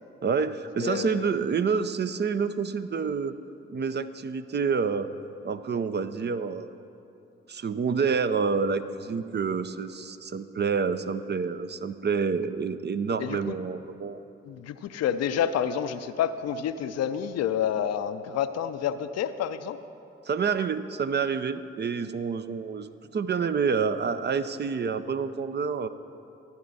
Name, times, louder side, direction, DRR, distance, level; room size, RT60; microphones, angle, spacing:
voice 1, 0.2-3.4 3.7-5.1 5.4-6.7 7.5-14.2 20.2-25.9, right 5 dB, 35° right, 12 dB, 0.5 m, -28 dB
voice 2, 0.8-1.3 13.2-13.5 14.4-19.8, left 9 dB, 60° left, 11 dB, 0.6 m, -29 dB
14.0 x 10.0 x 4.1 m, 2.8 s
hypercardioid pair, 45°, 29 cm